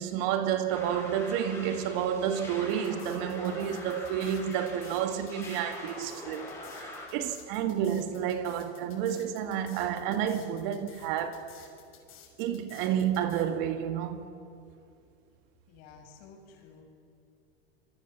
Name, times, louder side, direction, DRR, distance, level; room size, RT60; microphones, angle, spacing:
voice 1, 0.0-6.5 6.8-11.5 12.4-14.3, right 9 dB, 60° right, 2.2 m, -30 dB
sound 1, 0.7-7.1, left 2 dB, 10° left, 7.0 m, -44 dB
sound 2, 2.7-13.4, left 10 dB, 40° left, 6.4 m, -54 dB
voice 2, 15.7-16.8, left 5 dB, 60° left, 6.9 m, -52 dB
27.5 x 22.5 x 7.2 m
supercardioid pair, 125°, 31 cm